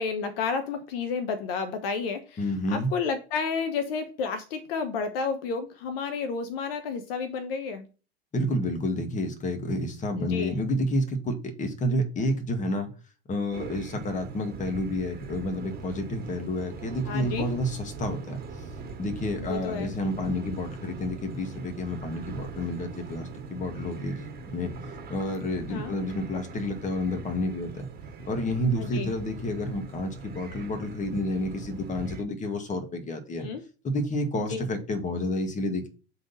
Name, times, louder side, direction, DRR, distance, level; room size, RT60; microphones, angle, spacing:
voice 1, 0.0-7.9 10.2-10.6 17.1-17.5 19.3-20.1 25.7-25.9 28.7-29.1 33.4-33.6 34.4-34.6, left 5 dB, 65° left, 1.0 m, -31 dB
voice 2, 2.4-2.9 8.3-12.9 13.3-18.4 19.0-24.7 25.1-27.9 28.3-33.5 33.8-35.9, left 1 dB, 25° left, 1.8 m, -30 dB
sound 1, 13.5-32.2, right 4 dB, 30° right, 1.8 m, -41 dB
7.5 x 4.0 x 4.1 m
hypercardioid pair, 100°, 31 cm